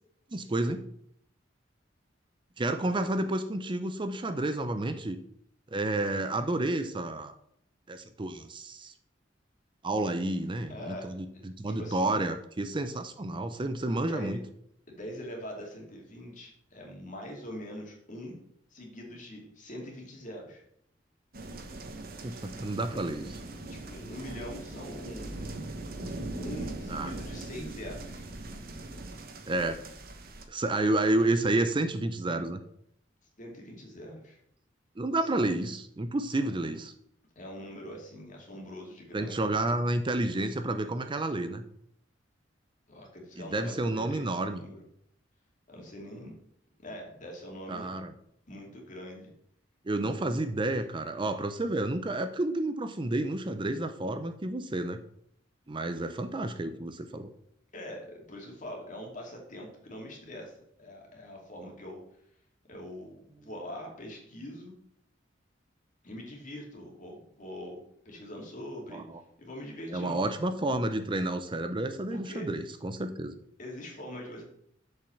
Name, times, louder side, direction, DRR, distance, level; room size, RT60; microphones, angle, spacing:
voice 1, 0.3-0.8 2.6-5.2 5.7-7.3 7.9-8.9 9.8-14.4 21.6-21.7 22.2-23.4 26.9-27.1 29.5-29.8 30.5-32.6 35.0-36.9 39.1-41.6 43.4-44.6 47.7-48.1 49.9-55.0 55.7-57.3 68.9-69.2 69.9-73.4, right 2 dB, 25° right, 9 dB, 0.6 m, -30 dB
voice 2, 10.7-12.2 13.9-14.4 14.9-18.4 18.7-20.6 23.7-25.5 26.4-28.2 28.5-28.7 33.4-34.4 35.3-35.4 37.4-39.5 42.9-44.8 45.7-46.3 46.8-47.9 48.5-49.3 57.7-62.0 62.7-64.7 66.0-69.0 69.4-70.2 72.1-72.5 73.6-74.4, left 1 dB, 45° left, 0 dB, 2.5 m, -43 dB
sound 1, 21.3-30.4, right 2 dB, 55° right, 1.2 m, -41 dB
7.0 x 5.6 x 7.1 m, 0.71 s
head